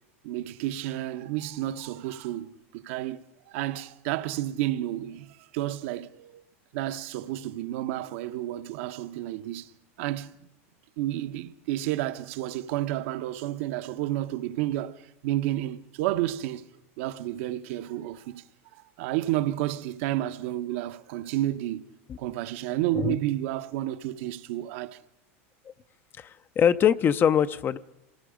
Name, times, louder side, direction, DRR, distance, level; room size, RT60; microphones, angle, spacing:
voice 1, 0.2-6.4 6.7-9.7 10.0-10.3 11.0-16.7 17.0-18.4 19.0-21.9 22.2-25.0, right 14 dB, 65° right, 1.0 m, -31 dB
voice 2, 26.6-27.8, left 8 dB, 30° left, 0.6 m, -22 dB
26.5 x 19.5 x 5.1 m
supercardioid pair, 125°, 7 cm